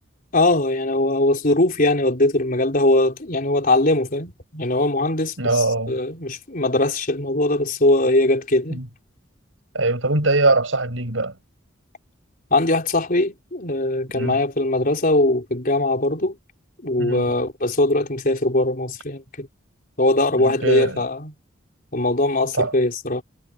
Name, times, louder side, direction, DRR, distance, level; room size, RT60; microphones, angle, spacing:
voice 1, 0.3-5.3 5.9-8.8 12.5-16.4 16.8-19.5 20.0-21.3 21.9-23.2, left 2 dB, 45° left, 4.3 m, -20 dB
voice 2, 5.4-6.0 8.7-8.9 9.7-11.4 14.1-14.4 17.0-17.3 20.4-21.0 22.5-22.7, right 2 dB, 85° right, 6.6 m, -22 dB
head